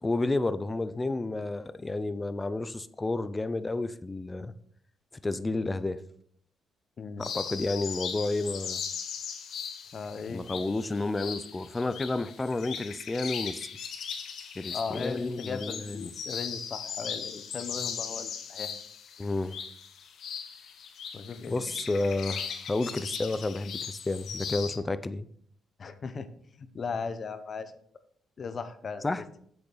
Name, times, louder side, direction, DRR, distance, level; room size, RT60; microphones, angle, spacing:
voice 1, 0.0-4.5 5.2-6.0 7.2-8.8 10.3-13.7 14.6-16.1 19.2-19.6 21.5-25.3 29.0-29.2, left 2 dB, 20° left, 14 dB, 0.5 m, -31 dB
voice 2, 7.0-7.3 9.9-10.4 14.7-18.8 21.1-21.7 25.8-26.3 26.6-27.7 28.4-29.0, left 5 dB, 45° left, 11 dB, 0.8 m, -37 dB
sound 1, 7.2-24.8, left 7 dB, 65° left, 1.1 m, -38 dB
7.9 x 6.8 x 4.0 m, 0.65 s
cardioid pair, 90°, 0 cm